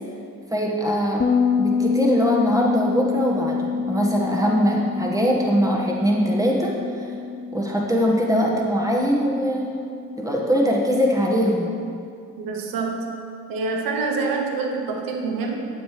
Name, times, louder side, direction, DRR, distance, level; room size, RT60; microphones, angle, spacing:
voice 1, 0.5-1.3 1.6-6.7 7.5-9.9 10.2-11.7, equal, 10° right, -2 dB, 1.7 m, -22 dB
Bass guitar, 1.2-10.6, left 5 dB, 25° left, 0.6 m, -27 dB
voice 2, 12.4-13.1 13.5-15.7, right 4 dB, 65° right, 1 dB, 1.1 m, -26 dB
9.2 x 7.3 x 3.4 m, 2.4 s
supercardioid pair, 55°, 37 cm